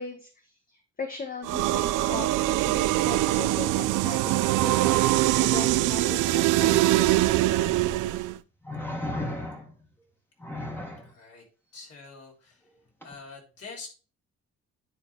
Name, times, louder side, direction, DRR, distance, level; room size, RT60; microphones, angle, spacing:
voice 1, 0.0-5.0 5.4-7.1, left 4 dB, 30° left, 5 dB, 1.1 m, -38 dB
sound 1, 1.4-8.4, right 16 dB, 85° right, 0.5 m, -23 dB
sound 2, 7.3-7.4 8.6-9.9 10.4-11.1 13.0-13.1, left 1 dB, 5° left, 1.9 m, -34 dB
voice 2, 11.0-11.4 11.7-12.7 13.0-13.9, left 4 dB, 50° left, -1 dB, 3.7 m, -45 dB
9.6 x 4.1 x 4.5 m, 0.35 s
cardioid pair, 90°, 30 cm